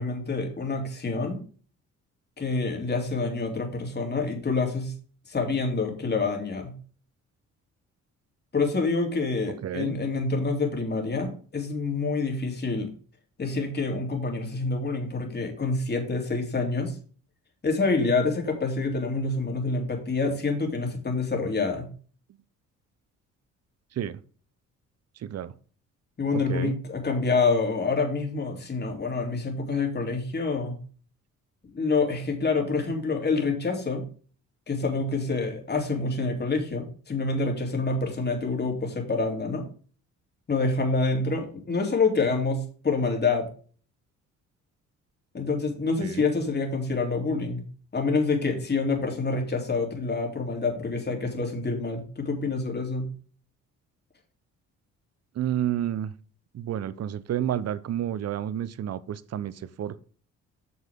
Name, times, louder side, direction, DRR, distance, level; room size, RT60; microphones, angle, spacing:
voice 1, 0.0-1.4 2.4-4.9 5.3-6.7 8.5-12.9 13.4-16.9 17.6-21.9 26.2-30.8 31.7-34.1 34.7-39.7 40.5-43.5 45.3-47.6 47.9-53.1, left 3 dB, 35° left, 2 dB, 3.3 m, -27 dB
voice 2, 9.6-10.0 24.0-24.2 25.2-25.5 26.3-26.8 46.0-46.2 55.4-56.1 56.5-59.5 59.8-60.0, right 11 dB, 55° right, 16 dB, 0.8 m, -30 dB
9.0 x 6.7 x 3.7 m, 0.41 s
cardioid pair, 90°, 30 cm